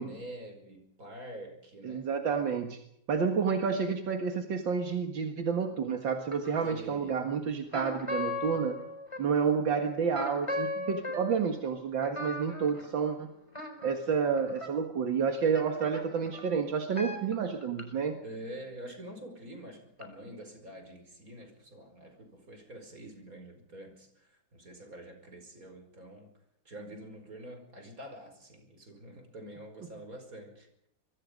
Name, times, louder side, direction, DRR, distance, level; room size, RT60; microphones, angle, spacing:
voice 1, 0.0-2.1 6.6-7.2 18.2-26.3 26.7-30.7, right 1 dB, 45° right, 6 dB, 5.7 m, -46 dB
voice 2, 1.8-2.8 3.1-8.8 9.2-13.3 13.8-18.2, right 6 dB, 75° right, 5 dB, 2.4 m, -30 dB
sound 1, 6.3-6.9 7.7-9.5 10.1-14.8 15.6-17.8 20.0-20.1, left 2 dB, 15° left, 4.2 m, -38 dB
25.5 x 23.0 x 5.2 m, 0.76 s
omnidirectional pair, 2.1 m